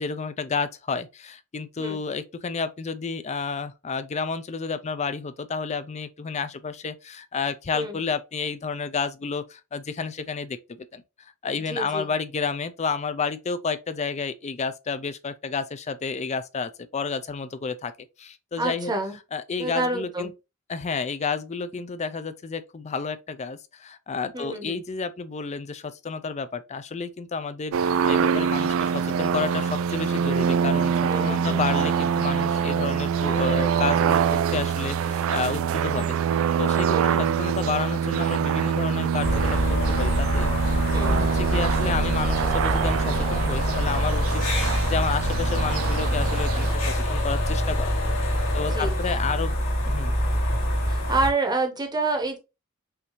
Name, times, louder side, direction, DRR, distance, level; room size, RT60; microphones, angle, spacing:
voice 1, 0.0-11.0 11.4-17.9 18.2-18.9 19.3-20.3 20.7-36.2 36.6-40.6 41.1-47.9 48.5-49.6 49.9-50.1, left 5 dB, 30° left, 0.5 m, -31 dB
voice 2, 11.4-12.1 18.6-19.2 19.6-20.3 24.3-24.8 31.1-31.6 35.9-36.1 36.9-37.2 40.9-41.2 48.5-49.2 50.9-52.4, right 2 dB, 20° right, 0.9 m, -28 dB
sound 1, 27.7-46.8, right 7 dB, 65° right, 0.3 m, -25 dB
sound 2, 39.2-51.3, equal, 65° left, 2.3 m, -25 dB
5.6 x 2.7 x 3.0 m
head